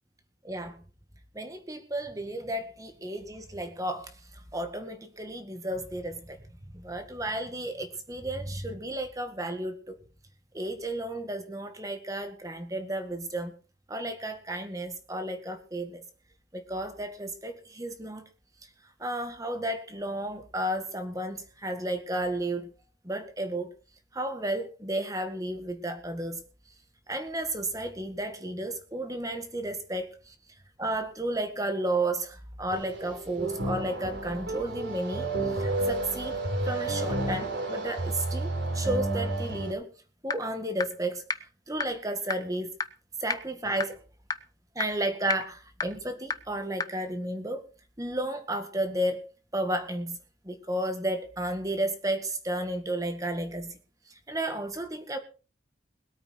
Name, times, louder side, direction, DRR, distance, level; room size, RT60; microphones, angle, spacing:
voice 1, 0.4-0.8 1.3-4.1 4.5-6.4 6.7-10.0 10.5-13.6 13.9-16.0 16.5-18.2 19.0-22.7 23.0-23.7 24.1-26.4 27.1-30.3 30.8-36.4 36.6-39.9 40.2-41.2 41.7-42.7 43.2-44.0 44.8-47.6 48.0-50.2 50.4-53.8 54.3-55.2, right 1 dB, 20° right, 7 dB, 1.9 m, -33 dB
sound 1, 32.7-39.7, right 2 dB, 70° right, 4.3 m, -31 dB
sound 2, 40.3-40.4 40.8-40.9 41.3-41.4 41.8-41.9 42.3-42.4 42.8-42.9 43.3-43.4 43.8-43.9 44.3-44.4 44.8-44.9 45.3-45.4 45.8-45.9 46.3-46.4 46.8-46.9, left 4 dB, 20° left, 0.7 m, -28 dB
21.5 x 8.8 x 4.5 m, 0.35 s
head